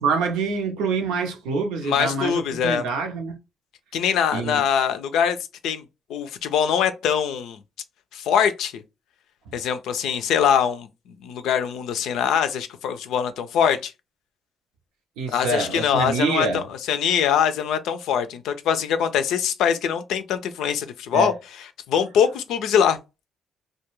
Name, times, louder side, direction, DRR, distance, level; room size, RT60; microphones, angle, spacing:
voice 1, 0.0-3.4 4.3-4.6 15.2-16.7 21.1-21.3, right 4 dB, 90° right, 0.6 m, -25 dB
voice 2, 1.8-2.8 3.9-5.4 5.6-5.8 6.1-7.6 8.1-8.8 9.5-10.9 11.2-13.9 15.3-21.3 21.9-23.0, left 8 dB, 80° left, 0.4 m, -23 dB
2.3 x 2.2 x 3.0 m
supercardioid pair, 60°, 0 cm